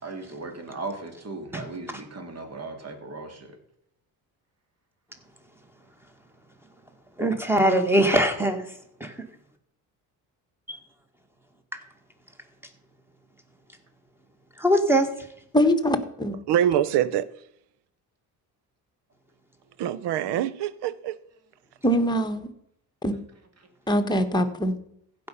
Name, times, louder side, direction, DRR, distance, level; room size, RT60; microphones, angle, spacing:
voice 1, 0.0-3.5, right 3 dB, 35° right, 2.5 m, -37 dB
voice 2, 7.2-8.7 9.0-9.2 10.7-10.8 14.6-15.1, right 1 dB, 5° right, 2.0 m, -21 dB
voice 3, 15.5-16.3 21.8-22.5 23.0-23.1 23.9-24.7, equal, 10° left, 1.4 m, -23 dB
voice 4, 16.5-17.3 19.8-21.2, right 10 dB, 75° right, 0.8 m, -24 dB
15.0 x 5.4 x 5.6 m
cardioid pair, 90°, 42 cm